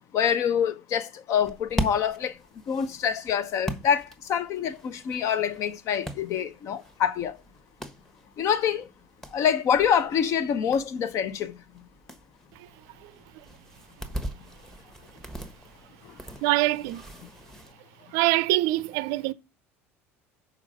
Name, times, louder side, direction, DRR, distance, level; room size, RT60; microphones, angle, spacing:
voice 1, 0.1-2.4 2.7-7.4 8.4-8.9 9.3-11.6 16.0-16.1 17.2-17.3, left 8 dB, 45° left, 0.8 m, -26 dB
sound 1, 1.3-17.7, right 1 dB, 5° left, 1.2 m, -40 dB
voice 2, 16.4-17.0 18.1-19.3, right 18 dB, 55° right, 0.5 m, -24 dB
6.2 x 5.0 x 6.6 m
figure-of-eight pair, 65°, 7 cm